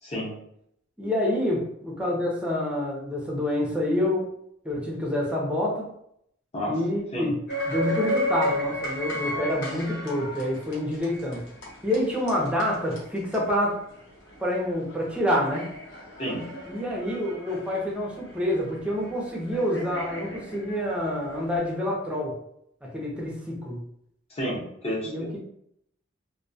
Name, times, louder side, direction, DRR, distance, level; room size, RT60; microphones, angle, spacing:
voice 1, 0.0-0.3 6.5-6.8 7.1-7.3 16.2-16.4 24.3-25.4, equal, 30° left, -4 dB, 0.8 m, -31 dB
voice 2, 1.0-4.3 4.6-5.9 6.7-7.4 7.7-11.4 11.8-13.8 14.4-15.7 16.7-22.3 22.8-23.8 25.1-25.4, left 1 dB, 5° right, -3 dB, 0.5 m, -27 dB
sound 1, 7.5-21.7, left 1 dB, 65° left, 0.8 m, -34 dB
2.2 x 2.2 x 2.6 m, 0.73 s
head